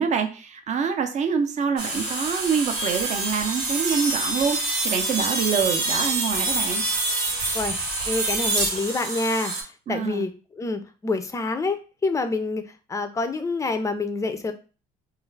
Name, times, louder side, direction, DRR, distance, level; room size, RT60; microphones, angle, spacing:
voice 1, 0.0-6.8 9.9-10.2, right 6 dB, 45° right, 6 dB, 0.5 m, -26 dB
sound 1, 1.8-9.6, right 2 dB, 85° right, 0.9 m, -26 dB
voice 2, 8.1-9.5 9.9-12.6 12.9-14.5, left 3 dB, 20° left, 9 dB, 0.4 m, -27 dB
2.4 x 2.3 x 3.1 m, 0.35 s
cardioid pair, 110°, 17 cm